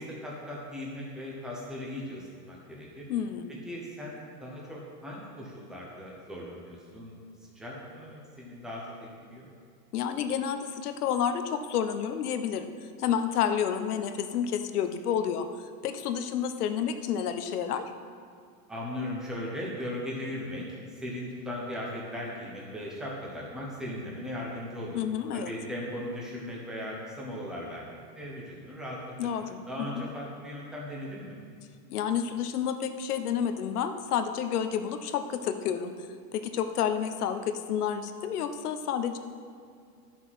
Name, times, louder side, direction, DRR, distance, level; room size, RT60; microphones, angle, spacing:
voice 1, 0.0-3.0 3.7-7.1 7.4-8.9 9.2-9.5 18.7-25.0 25.3-29.0 29.7-31.4, left 1 dB, ahead, -4 dB, 0.9 m, -38 dB
voice 2, 3.1-3.5 9.9-12.7 13.0-15.5 15.8-17.8 24.9-25.5 29.2-30.0 31.9-35.9 36.3-39.2, left 8 dB, 65° left, 8 dB, 1.0 m, -30 dB
11.0 x 6.3 x 6.0 m, 2.3 s
supercardioid pair, 165°, 49 cm